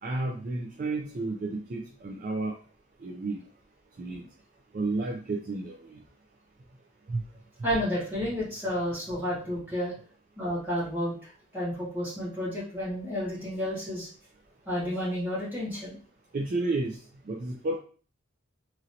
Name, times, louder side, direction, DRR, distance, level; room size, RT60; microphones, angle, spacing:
voice 1, 0.0-2.6 3.0-3.4 4.0-4.3 4.7-6.0 7.1-7.2 16.3-17.0 17.2-17.8, right 2 dB, 40° right, 0 dB, 0.4 m, -31 dB
voice 2, 7.6-9.9 10.4-14.1 14.6-16.0, equal, 10° right, -8 dB, 1.6 m, -31 dB
3.0 x 2.6 x 2.7 m, 0.40 s
head